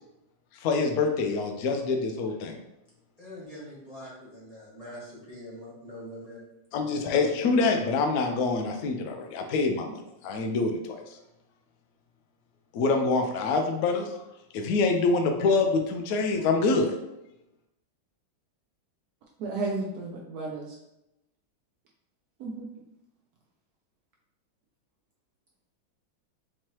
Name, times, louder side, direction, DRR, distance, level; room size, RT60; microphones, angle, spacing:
voice 1, 0.6-2.6 6.7-11.0 12.7-14.1 14.5-16.9, left 3 dB, 90° left, 3 dB, 0.8 m, -25 dB
voice 2, 3.2-6.4 7.2-7.3, equal, 25° left, -6 dB, 1.0 m, -43 dB
voice 3, 19.4-20.8 22.4-22.7, right 3 dB, 80° right, -1 dB, 0.8 m, -33 dB
4.6 x 2.9 x 3.0 m, 0.90 s
omnidirectional pair, 2.2 m